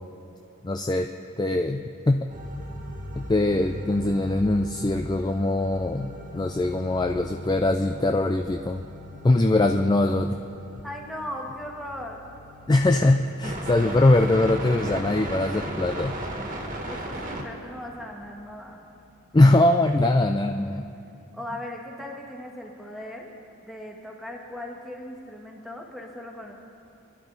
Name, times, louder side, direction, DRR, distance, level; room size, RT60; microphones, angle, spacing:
voice 1, 0.6-1.1 1.4-2.3 3.2-8.8 9.2-10.4 12.7-16.2 19.3-20.8, left 2 dB, 20° left, 5 dB, 0.3 m, -22 dB
sound 1, 2.3-17.4, right 1 dB, 40° right, 1.7 m, -37 dB
voice 2, 10.8-12.3 16.9-18.8 21.3-23.3 23.6-26.5, left 1 dB, ahead, -1 dB, 1.5 m, -38 dB
24.5 x 11.5 x 4.0 m, 2.6 s
head